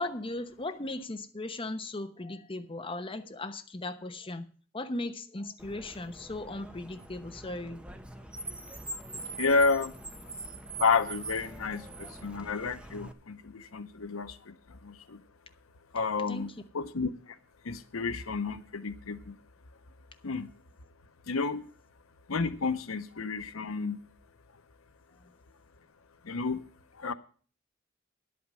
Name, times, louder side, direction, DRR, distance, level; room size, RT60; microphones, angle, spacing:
voice 1, 0.0-4.5 4.7-7.8 16.3-16.5, left 2 dB, 25° left, 7 dB, 1.0 m, -37 dB
Car, 5.6-13.1, right 2 dB, 5° right, 0.8 m, -43 dB
voice 2, 9.4-9.9 10.8-14.5 14.8-15.2 15.9-16.5 16.7-17.1 17.7-19.3 20.2-20.5 21.3-21.6 22.3-24.0 26.3-26.6 27.0-27.1, left 4 dB, 90° left, 12 dB, 0.8 m, -30 dB
10.5 x 8.6 x 6.2 m, 0.41 s
head